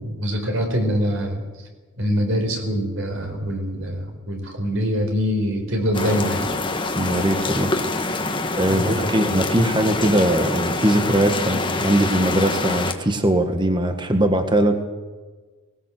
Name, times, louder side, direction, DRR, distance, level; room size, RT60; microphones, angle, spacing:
voice 1, 0.0-1.4 2.0-6.5 8.7-8.9, equal, 60° right, 3 dB, 4.5 m, -24 dB
sound 1, 5.9-12.9, left 2 dB, 20° left, 1.6 m, -25 dB
voice 2, 6.9-7.7 8.6-14.8, right 1 dB, 20° right, 6 dB, 1.6 m, -20 dB
20.0 x 19.0 x 7.8 m, 1.3 s
head